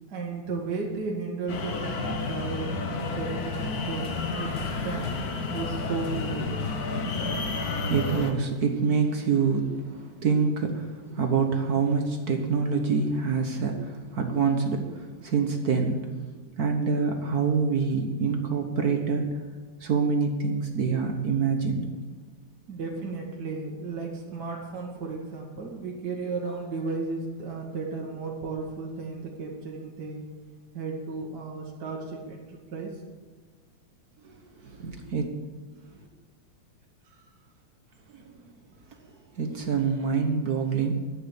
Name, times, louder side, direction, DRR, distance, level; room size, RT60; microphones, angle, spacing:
voice 1, 0.1-5.2 5.5-6.5 10.0-10.2 22.7-30.2 30.7-33.0 37.1-37.2, right 4 dB, 40° right, -2 dB, 2.1 m, -34 dB
sound 1, 1.5-8.3, left 3 dB, 55° left, 1.0 m, -31 dB
voice 2, 7.4-16.2 16.6-19.4 19.8-21.9 34.2-35.2 38.1-38.6 39.0-39.1 39.3-40.9, right 5 dB, 60° right, 4 dB, 0.9 m, -26 dB
11.0 x 9.2 x 8.4 m, 1.4 s
omnidirectional pair, 3.3 m